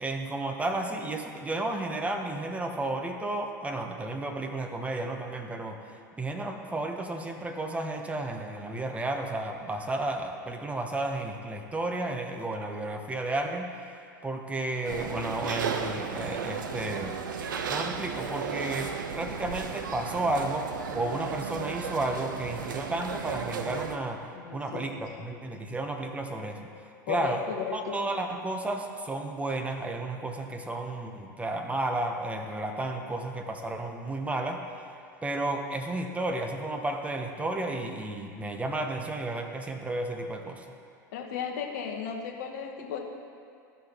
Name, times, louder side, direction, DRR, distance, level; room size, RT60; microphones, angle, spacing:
voice 1, 0.0-5.8 6.2-13.7 14.2-17.2 17.7-24.2 24.5-26.7 27.1-27.4 27.7-34.6 35.2-40.7, right 2 dB, 10° right, 4 dB, 0.9 m, -32 dB
sound 1, 14.9-24.0, right 6 dB, 75° right, 0.6 m, -34 dB
voice 2, 24.3-24.9 27.1-28.0 41.1-43.0, left 7 dB, 60° left, 1 dB, 1.1 m, -35 dB
14.0 x 6.1 x 3.0 m, 2.3 s
hypercardioid pair, 85°, 11 cm